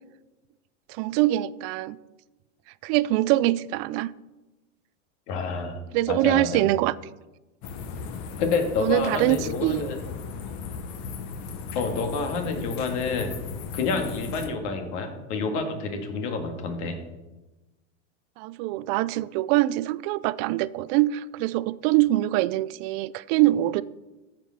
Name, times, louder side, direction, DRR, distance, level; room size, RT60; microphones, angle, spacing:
voice 1, 1.0-2.0 2.8-4.1 5.9-6.9 8.8-9.8 18.4-23.8, right 16 dB, 50° right, 18 dB, 0.4 m, -23 dB
voice 2, 5.3-6.6 8.4-10.0 11.7-13.3 13.7-17.0, left 4 dB, 65° left, 4 dB, 2.2 m, -28 dB
sound 1, 7.6-14.5, left 5 dB, 50° left, 1.2 m, -37 dB
14.0 x 5.1 x 5.9 m, 1.1 s
supercardioid pair, 130°, 37 cm